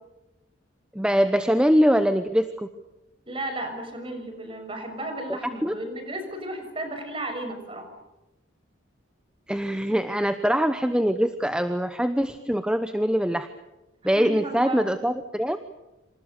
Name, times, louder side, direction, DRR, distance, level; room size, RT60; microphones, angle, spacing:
voice 1, 0.9-2.7 5.6-5.7 9.5-13.5 14.0-15.6, equal, 5° right, 9 dB, 0.9 m, -23 dB
voice 2, 3.3-7.9 14.0-14.9, right 1 dB, 25° right, 6 dB, 6.3 m, -34 dB
27.5 x 27.5 x 6.7 m, 0.99 s
head